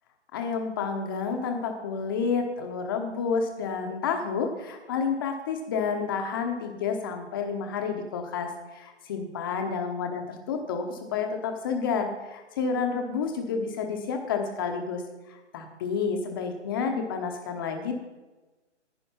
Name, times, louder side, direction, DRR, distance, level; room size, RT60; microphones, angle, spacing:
voice 1, 0.3-15.0 15.3-17.9, left 5 dB, 20° left, 5 dB, 1.0 m, -30 dB
10.5 x 10.5 x 5.7 m, 1.2 s
figure-of-eight pair, 150°, 36 cm